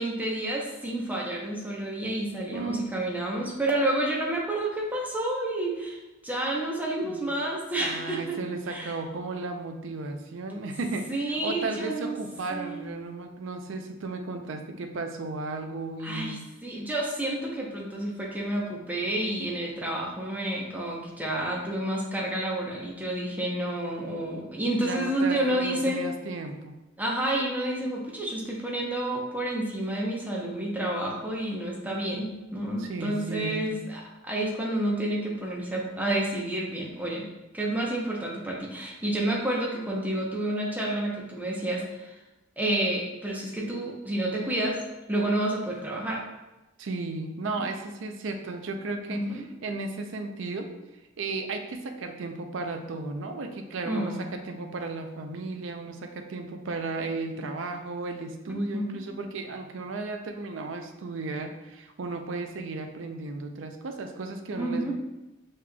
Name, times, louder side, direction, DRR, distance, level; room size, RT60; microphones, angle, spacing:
voice 1, 0.0-8.4 8.7-8.9 11.1-12.2 12.5-12.8 16.0-26.0 27.0-37.3 37.5-42.2 42.6-44.8 45.1-46.2 47.5-47.6 49.1-49.5 53.8-54.3 58.5-59.0 64.6-64.9, right 1 dB, 10° right, -3 dB, 0.8 m, -30 dB
voice 2, 2.5-2.9 7.0-7.2 7.8-11.1 11.4-16.5 24.7-26.7 32.8-33.8 46.8-49.2 49.6-50.7 51.2-64.9, right 3 dB, 70° right, 5 dB, 0.5 m, -34 dB
5.8 x 3.1 x 2.3 m, 1.0 s
head